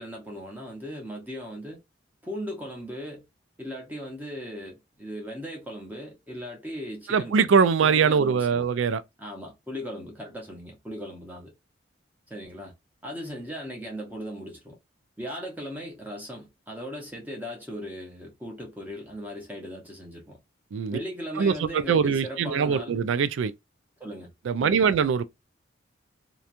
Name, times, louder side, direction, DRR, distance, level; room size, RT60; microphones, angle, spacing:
voice 1, 0.0-1.8 2.2-3.2 3.6-7.5 7.8-8.7 9.2-11.5 12.3-12.7 13.0-14.8 15.2-20.4 20.9-23.0 24.0-24.3 24.6-24.9, equal, 10° right, 0.7 m, -38 dB
voice 2, 7.1-9.0 20.7-21.0 21.4-23.5 24.5-25.2, right 6 dB, 80° right, 0.3 m, -22 dB
2.9 x 2.2 x 2.4 m
head